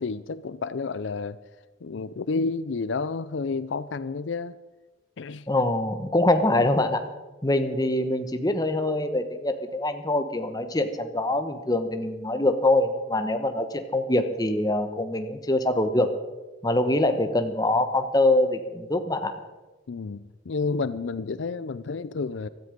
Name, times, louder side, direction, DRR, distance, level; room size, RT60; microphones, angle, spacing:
voice 1, 0.0-1.4 1.8-4.6 5.2-5.5 19.9-22.5, left 4 dB, 75° left, 15 dB, 0.5 m, -30 dB
voice 2, 5.5-7.0 7.4-16.1 16.6-19.3, left 1 dB, 20° left, 7 dB, 1.2 m, -24 dB
16.0 x 13.5 x 5.2 m, 1.2 s
head